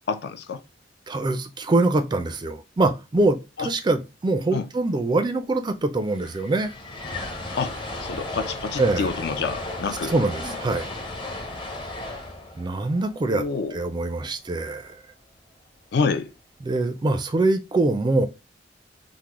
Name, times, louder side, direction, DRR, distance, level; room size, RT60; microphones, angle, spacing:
voice 1, 0.1-0.6 3.6-3.7 4.5-4.7 7.6-7.7 8.0-10.1 13.3-13.8 15.9-16.3, left 5 dB, 60° left, 0.4 m, -27 dB
voice 2, 1.1-6.7 8.8-9.1 10.1-10.9 12.6-13.4 13.7-15.0 16.6-18.3, right 2 dB, 25° right, 0.3 m, -24 dB
sound 1, 5.6-5.7 5.8-14.1, left 2 dB, 25° left, 0.7 m, -35 dB
3.6 x 2.0 x 2.9 m
head